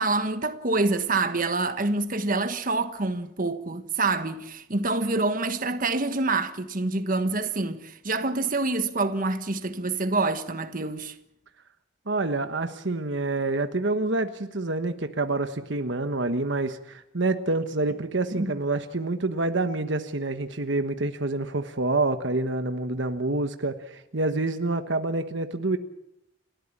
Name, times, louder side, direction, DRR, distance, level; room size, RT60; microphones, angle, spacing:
voice 1, 0.0-11.1 18.3-18.5, right 3 dB, 45° right, 1.4 m, -26 dB
voice 2, 12.1-25.8, right 2 dB, 65° right, 1.3 m, -27 dB
30.0 x 13.0 x 8.6 m
head